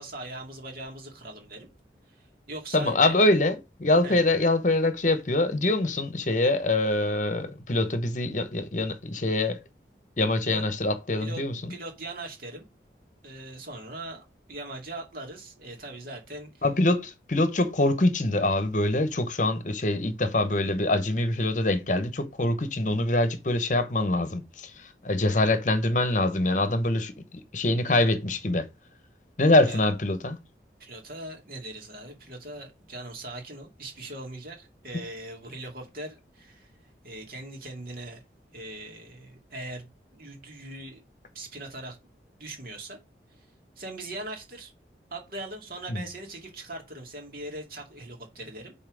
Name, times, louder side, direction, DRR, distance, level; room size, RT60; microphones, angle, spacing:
voice 1, 0.0-1.7 2.1-3.1 4.0-4.3 10.5-10.7 11.2-11.4 11.7-12.6 13.2-16.6 29.7-29.9 30.8-38.2 38.5-41.0 41.3-42.0 42.4-43.0 43.3-43.5 43.8-44.7 45.1-48.7, right 2 dB, 55° right, 2.4 m, -40 dB
voice 2, 2.7-9.6 10.2-11.7 16.6-28.7 29.4-30.4 45.9-46.0, left 2 dB, 45° left, 0.9 m, -24 dB
5.6 x 4.2 x 6.2 m
head